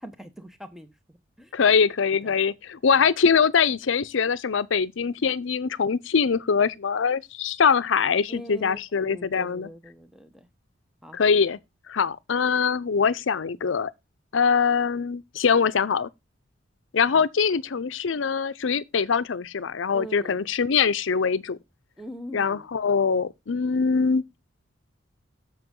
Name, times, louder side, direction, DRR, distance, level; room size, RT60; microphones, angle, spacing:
voice 1, 0.0-1.5 2.2-2.4 2.9-3.1 8.3-10.5 11.0-11.2 17.1-17.3 19.9-20.4 22.0-22.7, equal, ahead, 0.9 m, -42 dB
voice 2, 1.5-9.7 11.1-11.6 11.9-13.9 14.3-16.1 16.9-21.6 22.3-24.2, left 6 dB, 80° left, 0.6 m, -23 dB
7.7 x 7.1 x 3.7 m
head